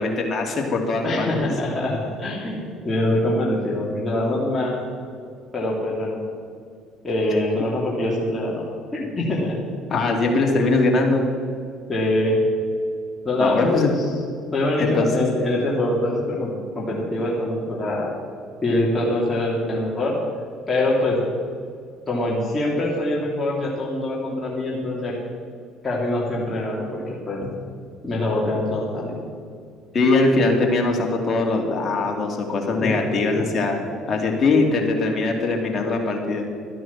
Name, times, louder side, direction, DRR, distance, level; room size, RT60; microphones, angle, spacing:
voice 1, 0.0-1.5 9.9-11.2 13.4-13.9 14.8-15.3 29.9-33.8 34.1-36.5, left 3 dB, 40° left, 1 dB, 2.7 m, -21 dB
voice 2, 1.0-4.8 5.5-6.2 7.0-8.6 8.9-9.6 11.9-12.4 13.2-14.0 14.5-18.1 18.6-20.2 20.7-21.2 22.1-25.2 25.8-27.4 28.0-29.2 32.7-32.9 33.3-33.4, left 1 dB, 25° left, -5 dB, 3.0 m, -24 dB
12.5 x 9.3 x 7.3 m, 2.3 s
hypercardioid pair, 70°, 0 cm